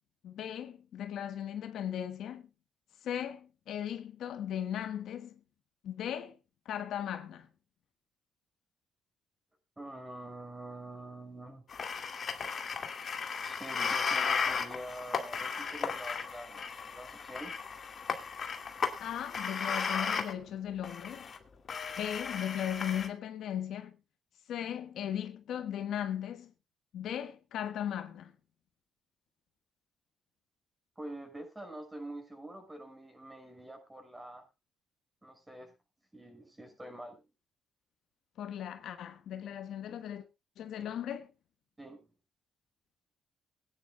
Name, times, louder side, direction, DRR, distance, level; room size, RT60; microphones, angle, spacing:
voice 1, 0.2-2.5 3.0-5.4 5.8-6.4 6.6-7.5 19.0-21.3 22.0-23.9 24.5-26.5 26.9-28.3 38.4-40.2 40.6-41.3, left 10 dB, 75° left, 1.4 m, -37 dB
voice 2, 9.8-11.6 13.4-16.6 16.9-17.6 31.0-34.5 35.2-35.7 36.1-37.2 41.8-42.1, right 1 dB, 15° right, 5.9 m, -46 dB
sound 1, 11.7-20.3 20.8-21.4 21.7-23.1, left 6 dB, 45° left, 2.2 m, -35 dB
22.0 x 10.0 x 2.3 m
cardioid pair, 90°, 0 cm